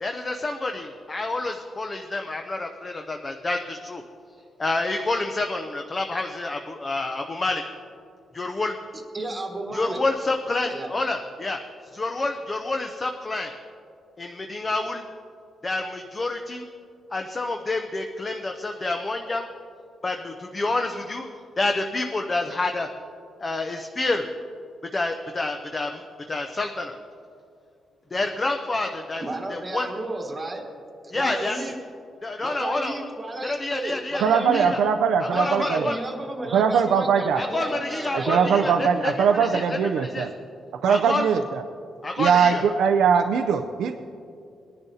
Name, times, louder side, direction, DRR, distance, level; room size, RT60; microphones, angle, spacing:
voice 1, 0.0-4.0 4.6-7.6 8.3-8.8 9.7-11.6 11.9-13.5 14.2-15.0 15.6-16.6 17.1-19.5 20.0-21.3 21.6-22.9 23.4-24.3 24.9-26.0 26.3-27.0 28.1-29.2 29.5-29.9 31.1-31.6 32.2-33.0 33.4-34.8 35.2-36.0 37.4-40.3 40.9-41.3 42.0-42.6, left 2 dB, 20° left, 4 dB, 0.5 m, -28 dB
voice 2, 9.1-10.0 10.7-10.9 29.2-30.6 31.0-31.8 32.4-34.7 35.3-38.9, right 2 dB, 20° right, 2 dB, 1.3 m, -33 dB
voice 3, 34.2-35.9 36.5-37.4 38.1-40.3 40.8-41.6 42.2-43.9, right 6 dB, 85° right, 6 dB, 0.4 m, -21 dB
20.5 x 10.5 x 2.8 m, 2.5 s
wide cardioid pair, 175°, 0 cm